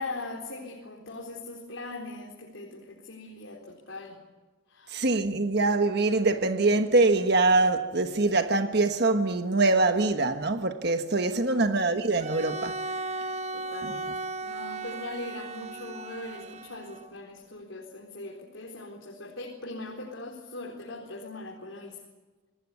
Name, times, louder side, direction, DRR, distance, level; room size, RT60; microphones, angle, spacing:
voice 1, 0.0-4.2 4.7-5.1 11.5-11.7 13.5-22.0, left 2 dB, 90° left, 4.1 m, -40 dB
voice 2, 4.9-12.8 13.8-13.9, right 3 dB, 60° right, 1.4 m, -24 dB
Bowed string instrument, 12.2-17.2, right 3 dB, 35° right, 1.1 m, -36 dB
26.5 x 19.0 x 9.6 m
head